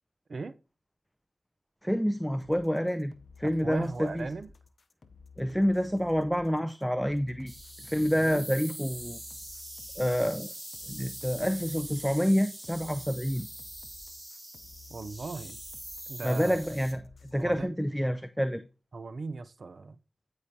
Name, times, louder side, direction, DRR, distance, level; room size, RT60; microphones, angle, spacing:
voice 1, 1.8-4.3 5.4-7.5 7.8-9.2 10.0-10.5 10.9-13.5 16.2-17.0 17.3-18.6, equal, ahead, 0.5 m, -28 dB
sound 1, 2.4-17.6, left 4 dB, 70° left, 0.7 m, -54 dB
voice 2, 3.4-4.5 5.5-5.6 8.0-8.4 14.9-15.6 16.1-16.6 17.4-17.7 18.0-18.1 18.9-20.0, right 4 dB, 70° right, 0.6 m, -38 dB
sound 2, 7.5-16.9, right 1 dB, 20° right, 2.5 m, -43 dB
12.5 x 4.9 x 2.7 m
cardioid pair, 40°, 0 cm